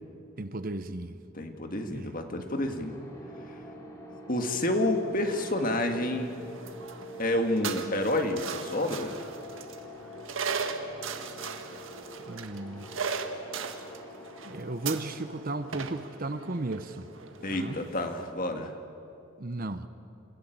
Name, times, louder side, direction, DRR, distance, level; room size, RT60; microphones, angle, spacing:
voice 1, 0.4-1.2 1.9-2.1 12.3-12.9 14.4-17.1 17.5-17.8 19.4-19.9, right 2 dB, 40° right, 0.8 m, -35 dB
voice 2, 1.3-3.0 4.3-6.4 7.2-9.2 17.4-18.7, left 1 dB, 40° left, 1.9 m, -29 dB
sound 1, 2.4-17.1, equal, 15° left, 3.5 m, -46 dB
sound 2, 4.7-18.3, right 5 dB, 70° right, 1.6 m, -39 dB
28.0 x 16.0 x 9.3 m
head